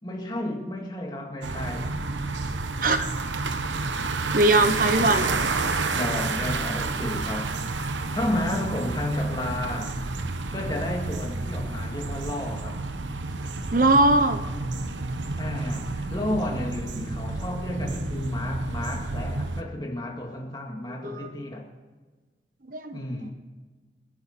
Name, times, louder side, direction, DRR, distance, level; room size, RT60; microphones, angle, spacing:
voice 1, 0.0-2.0 5.0-5.5 5.9-7.7 8.1-10.0 10.5-12.9 15.4-21.7 22.9-23.3, left 1 dB, 25° left, 2.0 m, -32 dB
sound 1, 1.4-19.6, right 3 dB, 90° right, 1.1 m, -30 dB
voice 2, 4.3-5.2 13.7-14.4 21.0-21.3 22.7-23.0, right 2 dB, 50° right, 0.9 m, -20 dB
26.5 x 9.3 x 4.3 m
head